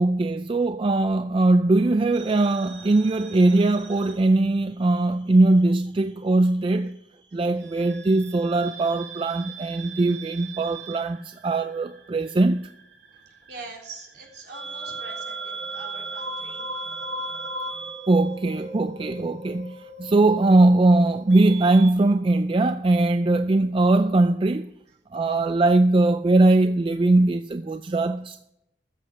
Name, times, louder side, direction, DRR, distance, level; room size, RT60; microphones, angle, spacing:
voice 1, 0.0-7.0 7.3-12.6 18.1-24.7 25.1-28.5, right 2 dB, 30° right, 0.3 m, -20 dB
sound 1, 2.1-5.0 5.2-6.4 7.6-21.9, right 3 dB, 85° right, 2.0 m, -38 dB
voice 2, 13.3-17.1 27.8-28.0, right 3 dB, 60° right, 3.7 m, -44 dB
14.0 x 7.6 x 6.5 m
head